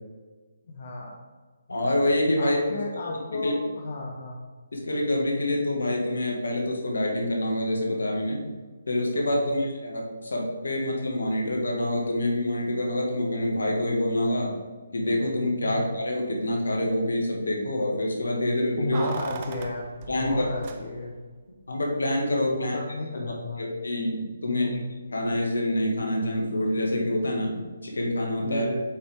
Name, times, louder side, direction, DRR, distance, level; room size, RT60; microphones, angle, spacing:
voice 1, 0.7-1.1 2.4-4.4 9.4-9.6 15.6-15.8 18.8-19.9 20.1-21.1 22.5-23.6 24.5-24.8 28.4-28.8, left 2 dB, 55° left, -2 dB, 1.1 m, -33 dB
voice 2, 1.7-2.6 2.9-3.1 3.4-3.5 4.7-8.5 8.8-14.6 14.9-19.0 20.1-20.5 21.7-22.8 23.1-23.2 23.6-24.8 25.1-28.7, left 1 dB, 85° left, -1 dB, 1.9 m, -26 dB
Keys jangling, 18.9-21.3 21.5-21.6, right 6 dB, 35° right, 0.6 m, -39 dB
7.7 x 5.2 x 3.6 m, 1.4 s
hypercardioid pair, 155°, 0 cm